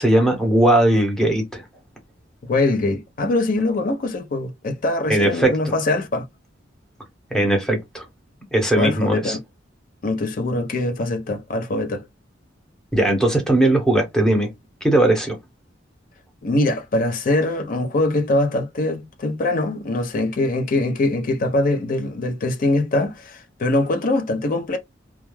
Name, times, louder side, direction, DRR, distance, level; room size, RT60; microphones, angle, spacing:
voice 1, 0.0-1.6 5.1-5.5 7.3-8.0 8.5-9.4 12.9-14.5 14.8-15.4, right 1 dB, 5° left, 0.8 m, -18 dB
voice 2, 2.5-6.2 8.7-9.4 10.0-12.0 16.4-24.8, left 2 dB, 45° left, 0.5 m, -22 dB
2.3 x 2.2 x 3.0 m
head